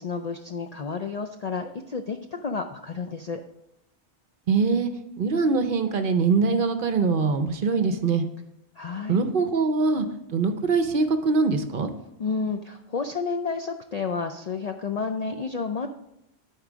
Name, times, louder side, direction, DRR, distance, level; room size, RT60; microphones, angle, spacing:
voice 1, 0.0-3.4 8.8-9.3 12.2-15.9, left 5 dB, 55° left, 6 dB, 0.4 m, -31 dB
voice 2, 4.5-4.9 5.2-8.3 9.1-10.1 10.3-11.9, right 4 dB, 55° right, 8 dB, 0.8 m, -23 dB
11.5 x 4.5 x 5.0 m, 0.85 s
omnidirectional pair, 1.2 m